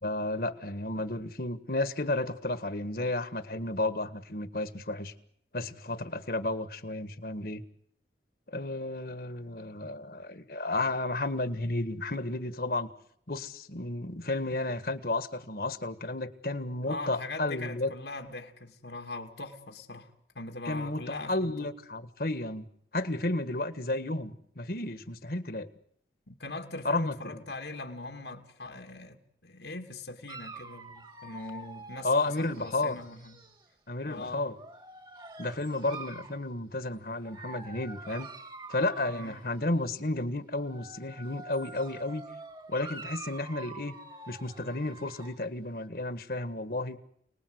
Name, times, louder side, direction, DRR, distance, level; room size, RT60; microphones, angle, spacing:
voice 1, 0.0-5.1 5.5-7.6 8.5-12.9 13.3-17.9 20.6-21.0 21.3-22.7 22.9-25.7 26.8-27.4 32.0-33.0 33.9-34.5 35.4-38.3 38.7-42.2 42.7-43.9 44.3-47.0, left 2 dB, 55° left, 1.6 m, -32 dB
voice 2, 16.9-21.7 26.3-33.4 34.0-34.5 36.1-36.3 39.1-39.4, left 2 dB, 85° left, 2.5 m, -41 dB
Dog, 30.3-33.7 34.5-36.4 37.2-39.8 40.5-45.4, right 3 dB, 25° right, 1.8 m, -46 dB
29.5 x 20.0 x 8.0 m
head